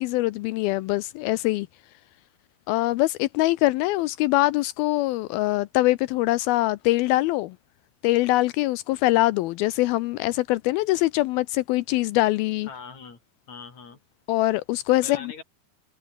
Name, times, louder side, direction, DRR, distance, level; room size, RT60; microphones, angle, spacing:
voice 1, 0.0-1.7 2.7-7.6 8.0-12.7 14.3-15.3, left 18 dB, 80° left, 2.4 m, -23 dB
voice 2, 12.7-13.2 13.5-14.0 15.0-15.4, left 5 dB, 45° left, 6.6 m, -41 dB
omnidirectional pair, 4.6 m